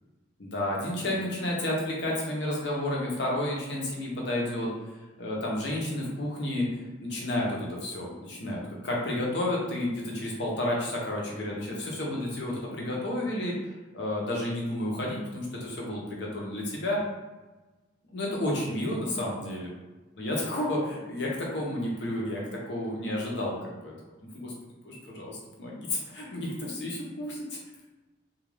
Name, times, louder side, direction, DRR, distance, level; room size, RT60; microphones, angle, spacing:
voice 1, 0.4-6.7 7.0-17.0 18.1-19.7 20.2-23.9 24.3-24.5 24.8-27.6, left 1 dB, 60° left, -3 dB, 0.7 m, -31 dB
2.4 x 2.3 x 3.2 m, 1.2 s
head